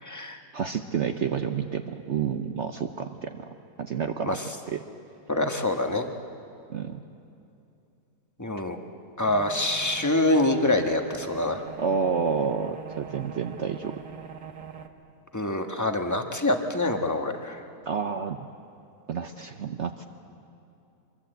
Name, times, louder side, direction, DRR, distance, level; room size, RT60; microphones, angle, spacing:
voice 1, 0.0-0.4 4.3-4.4 5.3-6.1 8.4-8.8 9.2-11.6 15.3-17.6, left 2 dB, 10° left, 5 dB, 1.3 m, -25 dB
voice 2, 0.5-3.5 3.8-4.4 4.7-4.8 6.7-7.0 11.8-13.9 17.9-18.5 19.1-20.0, right 6 dB, 55° right, 7 dB, 1.0 m, -29 dB
sound 1, 9.2-14.9, right 7 dB, 75° right, 1.7 m, -43 dB
24.5 x 23.5 x 8.0 m, 2.6 s
omnidirectional pair, 1.7 m